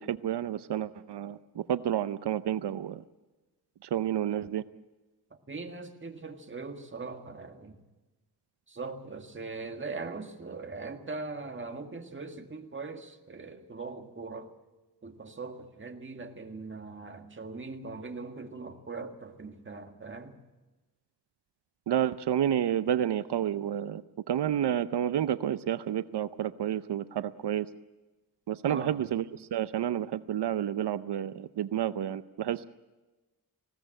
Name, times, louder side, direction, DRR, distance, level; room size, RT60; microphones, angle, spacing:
voice 1, 0.0-3.0 3.8-4.6 21.9-24.0 24.3-27.7 28.5-32.7, right 10 dB, 85° right, 13 dB, 0.7 m, -30 dB
voice 2, 5.3-7.8 8.7-14.5 15.0-20.4 28.6-29.1, right 3 dB, 30° right, 5 dB, 1.9 m, -41 dB
20.5 x 17.0 x 8.9 m, 1.2 s
wide cardioid pair, 140°, 40 cm